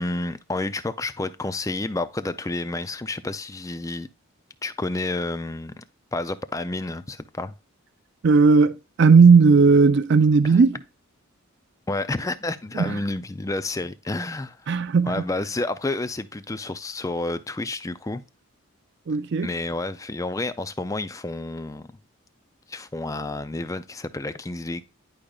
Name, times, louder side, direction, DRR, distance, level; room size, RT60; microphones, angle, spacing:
voice 1, 0.0-4.1 4.6-5.8 6.1-7.5 10.4-10.6 11.9-14.7 15.0-18.2 19.4-21.9 22.7-24.8, left 2 dB, 15° left, 0.4 m, -30 dB
voice 2, 8.2-10.8 12.7-13.0 14.7-15.2 19.1-19.5, right 4 dB, 50° right, 0.4 m, -16 dB
10.5 x 5.0 x 2.3 m
head